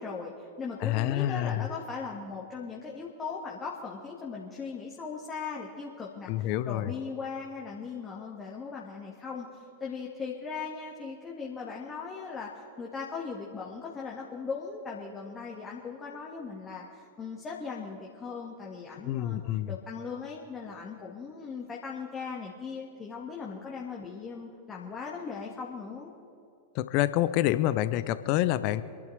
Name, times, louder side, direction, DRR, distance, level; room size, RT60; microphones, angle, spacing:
voice 1, 0.0-19.4 19.7-26.1, left 5 dB, 20° left, -3 dB, 1.8 m, -39 dB
voice 2, 0.8-1.7 6.3-6.9 19.0-19.7 26.7-28.8, left 14 dB, 45° left, 14 dB, 0.6 m, -27 dB
26.5 x 11.5 x 3.4 m, 2.5 s
figure-of-eight pair, 90°, 0 cm